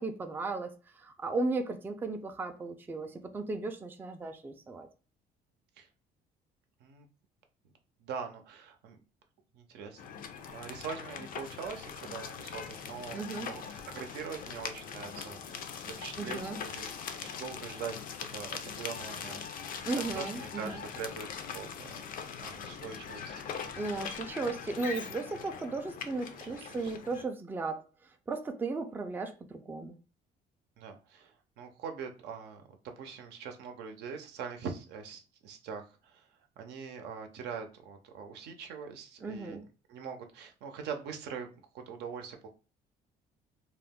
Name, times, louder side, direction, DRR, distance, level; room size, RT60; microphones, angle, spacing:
voice 1, 0.0-4.9 13.1-13.5 16.2-16.6 19.8-20.8 23.8-27.8 28.3-30.0 39.2-39.6, right 3 dB, 10° right, 0.3 m, -35 dB
voice 2, 8.0-9.0 9.5-10.0 10.5-16.9 17.2-17.9 18.3-21.9 22.4-23.5 26.3-26.9 30.8-32.6 33.0-36.3 36.6-41.5 41.7-42.5, right 6 dB, 80° right, 0.6 m, -43 dB
sound 1, 10.0-27.2, left 7 dB, 55° left, 0.5 m, -41 dB
2.4 x 2.0 x 3.5 m
cardioid pair, 110°, 17 cm